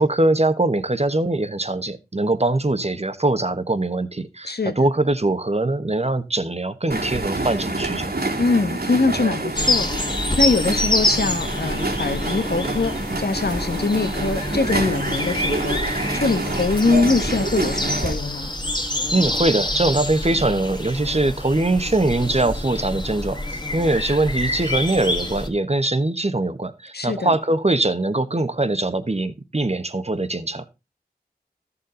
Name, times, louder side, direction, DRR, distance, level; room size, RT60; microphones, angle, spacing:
voice 1, 0.0-8.1 19.1-30.6, right 2 dB, 40° right, 1.2 m, -22 dB
voice 2, 4.4-4.9 8.4-9.9 10.4-15.8 16.1-18.5 26.9-27.3, left 3 dB, 80° left, 1.3 m, -23 dB
sound 1, 6.9-18.1, right 2 dB, 75° right, 2.7 m, -27 dB
sound 2, 9.6-25.5, left 1 dB, 25° left, 1.7 m, -26 dB
13.5 x 7.0 x 3.9 m
wide cardioid pair, 40°, 17 cm